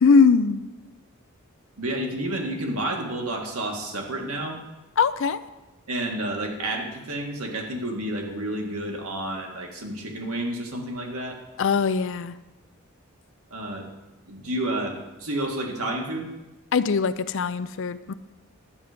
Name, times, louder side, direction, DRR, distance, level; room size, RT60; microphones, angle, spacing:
voice 1, 0.0-0.7 5.0-5.4 11.6-12.4 16.7-18.1, left 5 dB, 60° left, 14 dB, 0.5 m, -21 dB
voice 2, 1.8-4.6 5.9-11.4 13.5-13.8 14.3-16.3, right 1 dB, 75° right, 1 dB, 1.9 m, -30 dB
11.0 x 8.2 x 5.1 m, 1.1 s
head